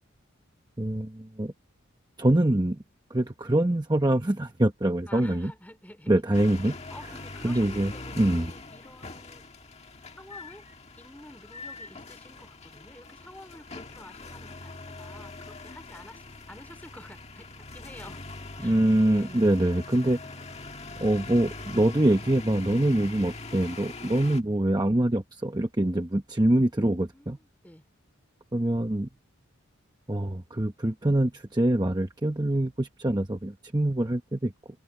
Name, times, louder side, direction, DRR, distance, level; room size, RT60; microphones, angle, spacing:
voice 1, 0.8-1.5 2.2-2.8 3.1-5.5 6.1-6.8 7.4-8.5 18.6-20.4 21.0-27.4 28.5-29.1 30.1-34.5, right 1 dB, 20° right, 0.9 m, -24 dB
voice 2, 5.1-6.2 6.7-9.5 10.2-10.6 11.0-18.2 18.6-18.8 19.0-19.6 27.1-27.9, left 1 dB, 10° left, 4.6 m, -49 dB
sound 1, 6.3-24.4, left 3 dB, 30° left, 1.7 m, -42 dB
head